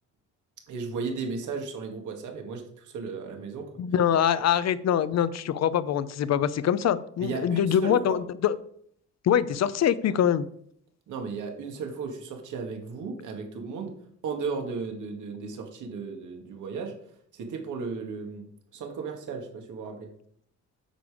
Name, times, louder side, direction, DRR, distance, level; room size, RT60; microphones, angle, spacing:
voice 1, 0.7-3.7 4.4-4.5 7.2-8.2 11.1-13.9 14.2-16.9 17.3-20.1, right 5 dB, 80° right, 3 dB, 2.1 m, -35 dB
voice 2, 3.8-8.5 9.2-10.4, left 9 dB, 60° left, 15 dB, 0.7 m, -24 dB
9.1 x 6.8 x 4.9 m, 0.66 s
cardioid pair, 90°, 30 cm